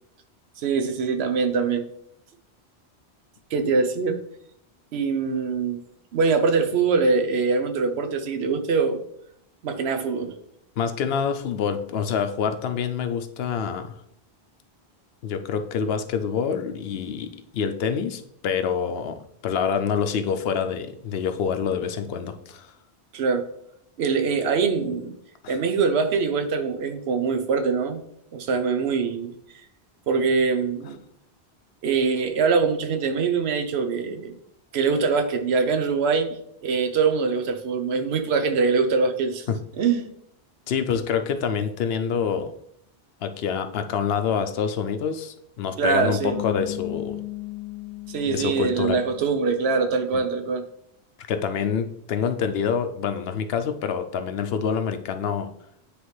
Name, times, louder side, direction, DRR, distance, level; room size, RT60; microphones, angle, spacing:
voice 1, 0.6-1.9 3.5-4.2 4.9-5.8 6.1-9.0 9.6-10.3 23.1-23.5 24.0-25.1 25.5-28.0 28.3-29.3 30.1-31.0 31.8-34.3 34.7-36.3 36.6-39.5 39.8-40.1 45.8-46.3 48.1-50.6, right 5 dB, 75° right, 7 dB, 1.0 m, -23 dB
voice 2, 10.8-13.9 15.2-19.2 19.4-22.7 25.4-25.6 39.5-39.6 40.7-42.5 43.2-47.2 48.3-49.0 50.1-50.2 51.3-55.5, left 7 dB, 70° left, 8 dB, 0.8 m, -26 dB
Bass guitar, 46.2-50.0, left 14 dB, 15° right, 1.3 m, -36 dB
9.5 x 3.3 x 3.1 m, 0.74 s
omnidirectional pair, 1.1 m